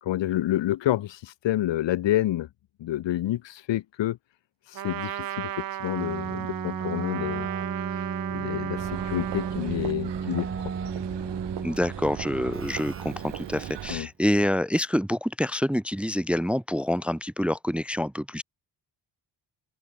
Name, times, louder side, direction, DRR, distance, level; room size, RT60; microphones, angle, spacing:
voice 1, 0.0-2.5 2.8-4.2 4.7-7.5 8.3-10.5 13.9-14.1, left 13 dB, 75° left, 1.2 m, -28 dB
Trumpet, 4.7-9.7, right 12 dB, 50° right, 0.7 m, -35 dB
Keyboard (musical), 5.9-14.0, right 6 dB, 30° right, 1.8 m, -34 dB
sound 1, 8.8-14.0, right 12 dB, 70° right, 1.3 m, -38 dB
voice 2, 11.6-18.4, equal, 5° right, 0.6 m, -27 dB
open air
wide cardioid pair, 155°, 44 cm